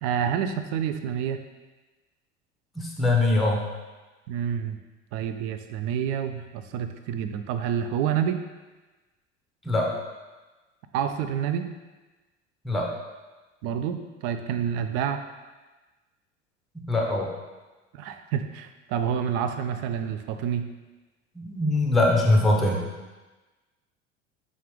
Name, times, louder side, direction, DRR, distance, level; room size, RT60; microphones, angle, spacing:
voice 1, 0.0-1.4 4.3-4.8 5.1-8.4 10.9-11.7 13.6-15.2 17.9-20.7, right 8 dB, 45° right, 8 dB, 0.4 m, -28 dB
voice 2, 2.8-3.6 9.6-9.9 12.6-12.9 16.7-17.3 21.4-22.8, left 2 dB, ahead, -2 dB, 0.7 m, -22 dB
5.1 x 2.4 x 3.5 m, 1.2 s
figure-of-eight pair, 75°, 37 cm